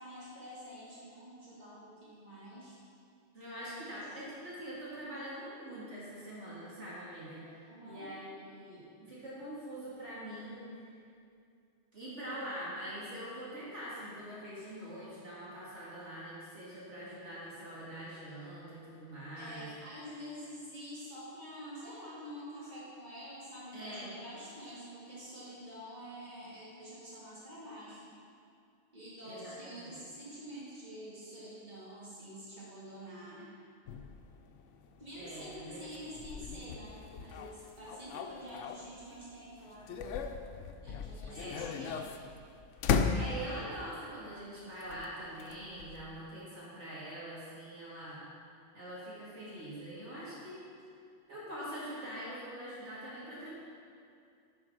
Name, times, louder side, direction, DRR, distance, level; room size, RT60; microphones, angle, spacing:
voice 1, 0.0-2.8 3.7-4.0 7.7-8.1 19.4-28.1 28.9-33.5 35.0-40.0 40.8-42.2, equal, 35° right, -9 dB, 2.5 m, -47 dB
voice 2, 3.3-10.7 11.9-19.7 23.7-24.1 29.2-30.0 35.1-35.8 41.3-41.6 43.1-48.2 48.7-50.6 51.3-53.5, right 1 dB, 70° right, -9 dB, 2.4 m, -44 dB
sound 1, 33.9-39.2 39.6-43.8 44.8-46.3, left 6 dB, 80° left, 0.9 m, -37 dB
9.8 x 5.2 x 5.9 m, 2.4 s
omnidirectional pair, 1.2 m